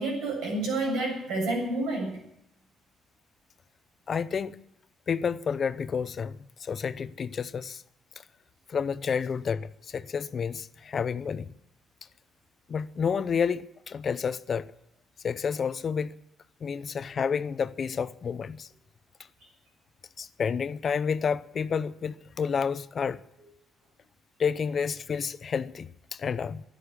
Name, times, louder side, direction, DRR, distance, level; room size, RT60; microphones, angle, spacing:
voice 1, 0.0-2.2, right 2 dB, 90° right, 7.9 m, -29 dB
voice 2, 4.1-4.6 5.1-7.8 8.7-11.5 12.7-14.7 15.2-16.1 16.6-18.7 20.2-23.2 24.4-26.6, left 6 dB, 50° left, 0.7 m, -30 dB
12.0 x 11.5 x 9.6 m
cardioid pair, 90°, 0 cm